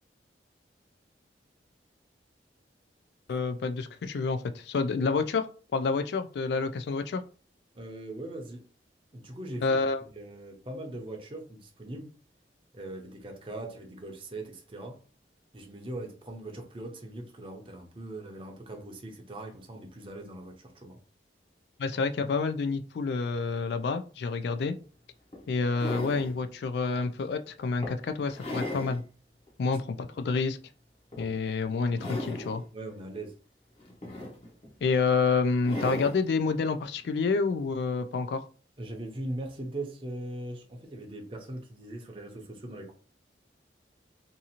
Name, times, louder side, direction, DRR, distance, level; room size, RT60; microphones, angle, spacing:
voice 1, 3.3-5.5 5.7-7.2 9.6-10.0 21.8-24.7 25.5-29.0 29.6-30.6 31.2-32.6 34.8-38.5, left 4 dB, 70° left, 0.3 m, -28 dB
voice 2, 7.7-8.6 9.1-9.8 10.1-12.1 12.7-15.0 15.5-21.0 29.7-29.8 32.7-33.3 38.8-42.9, right 1 dB, 30° right, 0.6 m, -40 dB
sound 1, 24.6-24.7 25.3-26.4 27.0-27.2 27.8-29.0 29.5-29.6 31.1-31.5 31.9-32.6 33.8-34.7 35.6-36.3 37.6-37.7, left 1 dB, 35° left, 0.7 m, -37 dB
2.7 x 2.4 x 2.8 m
head